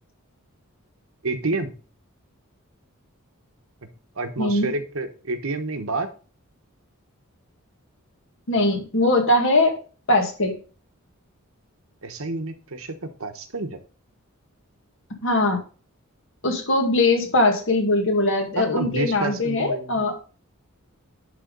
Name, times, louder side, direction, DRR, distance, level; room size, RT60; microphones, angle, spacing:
voice 1, 1.2-1.7 4.2-6.1 12.0-12.9 13.2-13.8 18.6-20.0, right 2 dB, 70° right, 7 dB, 1.1 m, -29 dB
voice 2, 4.4-4.7 8.5-9.8 10.1-10.6 15.2-15.6 16.4-20.2, left 2 dB, 60° left, 3 dB, 1.9 m, -21 dB
10.5 x 3.7 x 5.2 m, 0.37 s
head